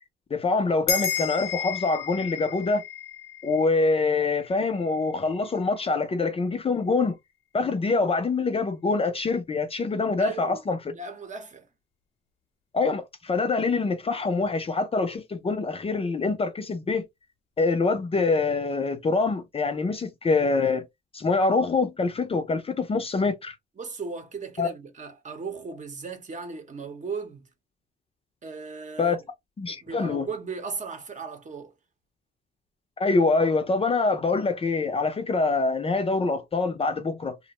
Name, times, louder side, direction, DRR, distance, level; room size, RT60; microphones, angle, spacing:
voice 1, 0.3-2.8 3.4-7.1 7.5-10.9 12.7-17.0 17.6-20.9 21.1-23.5 24.6-24.7 29.0-29.2 29.6-30.3 33.0-37.4, left 3 dB, 30° left, 0.5 m, -25 dB
sound 1, 0.9-5.6, left 7 dB, 90° left, 0.7 m, -33 dB
voice 2, 10.2-10.7 10.9-11.7 23.8-27.4 28.4-29.2 29.7-31.8, right 4 dB, 40° right, 0.8 m, -36 dB
2.5 x 2.0 x 2.9 m
cardioid pair, 90°, 20 cm